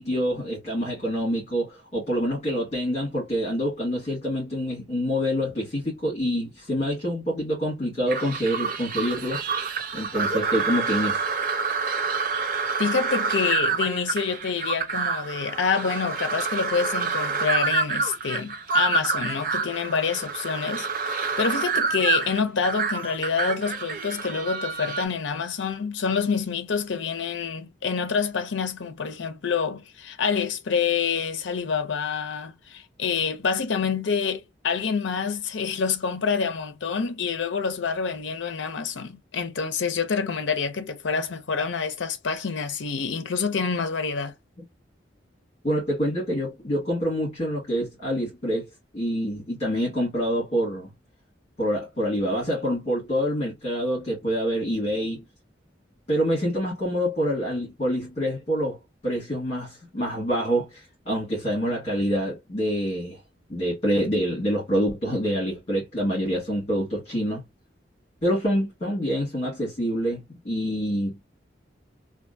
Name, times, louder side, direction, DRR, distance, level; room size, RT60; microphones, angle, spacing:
voice 1, 0.0-9.4 9.9-11.3 45.6-48.7 48.9-50.9 51.6-55.2 56.1-58.8 59.0-63.2 63.5-67.4 68.2-71.2, equal, 35° left, 1.9 m, -26 dB
sound 1, 8.1-25.1, right 5 dB, 45° right, 0.5 m, -27 dB
voice 2, 12.8-44.3, left 6 dB, 85° left, 0.6 m, -27 dB
3.5 x 2.5 x 2.6 m
head